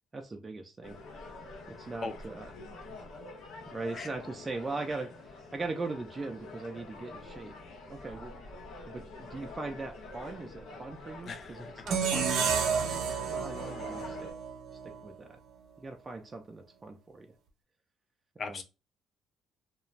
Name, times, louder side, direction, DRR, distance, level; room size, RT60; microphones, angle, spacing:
voice 1, 0.1-1.0 1.8-2.5 3.7-7.5 7.9-8.5 8.8-14.2 14.8-15.4 15.8-17.3 18.4-18.6, right 3 dB, 20° right, 0.4 m, -40 dB
sound 1, 0.8-14.3, left 2 dB, 75° left, 1.2 m, -46 dB
voice 2, 11.3-11.9 18.4-18.6, left 4 dB, 40° left, 0.5 m, -39 dB
sound 2, 11.9-15.1, right 6 dB, 70° right, 0.6 m, -31 dB
2.4 x 2.2 x 3.1 m
cardioid pair, 125°, 0 cm